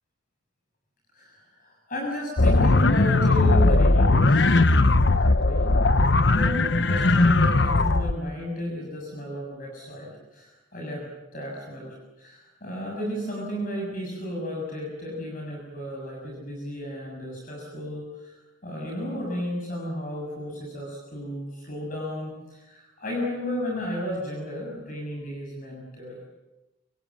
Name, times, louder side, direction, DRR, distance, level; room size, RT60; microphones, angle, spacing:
voice 1, 1.1-26.3, left 1 dB, 45° left, -1 dB, 6.8 m, -34 dB
sound 1, 2.4-8.1, left 2 dB, 60° left, 1.0 m, -19 dB
27.5 x 25.5 x 7.4 m, 1.0 s
head